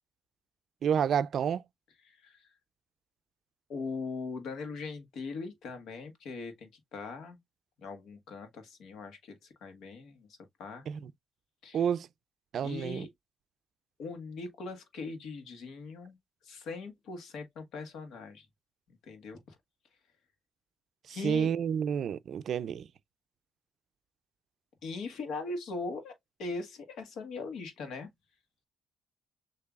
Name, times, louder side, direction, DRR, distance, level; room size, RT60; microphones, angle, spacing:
voice 1, 0.8-1.6 10.9-11.1 11.7-12.1 12.5-13.1 21.1-22.9, right 8 dB, 65° right, 0.4 m, -29 dB
voice 2, 2.0-2.5 3.7-7.4 7.8-10.8 11.6-11.8 12.6-13.1 14.0-16.2 16.4-18.5 19.0-19.6 21.1-21.5 24.8-26.1 26.4-28.1, left 4 dB, 75° left, 1.4 m, -40 dB
6.7 x 2.8 x 2.3 m
cardioid pair, 90°, 0 cm